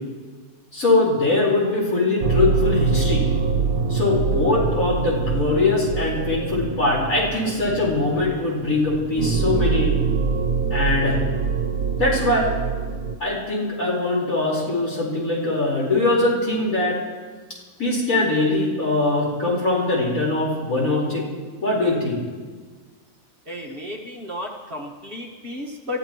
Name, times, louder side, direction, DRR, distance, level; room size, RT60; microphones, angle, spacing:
voice 1, 0.7-3.3 3.9-9.9 10.7-11.2 12.0-12.4 13.2-17.0 17.8-21.2 21.6-22.2, left 2 dB, 65° left, -4 dB, 4.9 m, -22 dB
sound 1, 2.2-13.2, right 5 dB, 80° right, 1.4 m, -24 dB
voice 2, 23.5-26.0, left 1 dB, 40° right, -1 dB, 1.7 m, -33 dB
29.5 x 14.5 x 3.0 m, 1.4 s
omnidirectional pair, 1.5 m